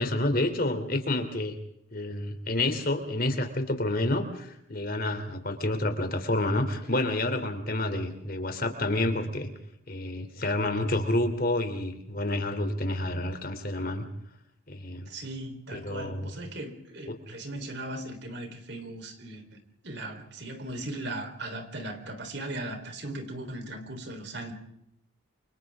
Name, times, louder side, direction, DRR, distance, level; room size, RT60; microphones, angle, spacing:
voice 1, 0.0-1.5 1.9-9.5 9.9-14.0 14.7-15.1 15.7-16.3 17.1-17.2, left 1 dB, 45° left, 6 dB, 3.1 m, -29 dB
voice 2, 15.1-19.6 19.8-24.5, right 1 dB, 55° right, 6 dB, 3.9 m, -38 dB
30.0 x 25.5 x 3.7 m, 0.80 s
head